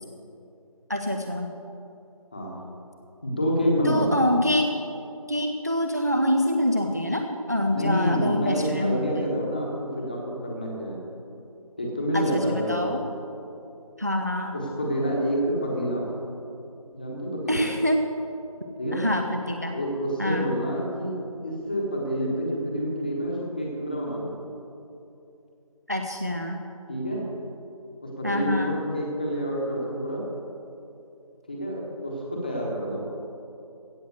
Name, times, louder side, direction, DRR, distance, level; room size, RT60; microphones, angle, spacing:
voice 1, 0.9-1.5 3.8-4.7 5.3-9.2 12.1-13.0 14.0-14.6 17.5-18.0 18.9-19.8 20.2-20.5 25.9-26.6 28.2-28.8, left 1 dB, 30° right, 4 dB, 0.5 m, -25 dB
voice 2, 3.2-4.2 7.7-11.0 11.8-12.9 14.5-16.1 16.9-17.7 18.8-19.0 19.7-24.3 26.9-27.2 28.0-30.2 31.5-33.0, equal, 15° left, -2 dB, 1.2 m, -28 dB
16.0 x 6.2 x 7.8 m, 2.7 s
figure-of-eight pair, 170°, 19 cm